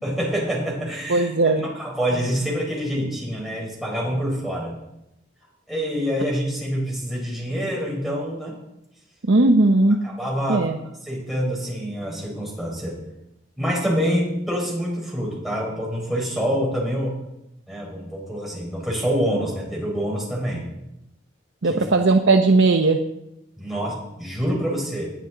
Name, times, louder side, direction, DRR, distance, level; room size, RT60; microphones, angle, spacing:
voice 1, 0.0-4.8 5.7-8.6 10.0-10.7 11.0-13.0 13.6-17.1 17.7-20.7 21.6-21.8 23.6-25.1, equal, ahead, -4 dB, 5.2 m, -26 dB
voice 2, 1.1-1.6 9.3-10.0 10.5-10.8 21.6-23.0, right 2 dB, 75° right, 5 dB, 0.8 m, -17 dB
20.5 x 10.5 x 3.9 m, 0.86 s
head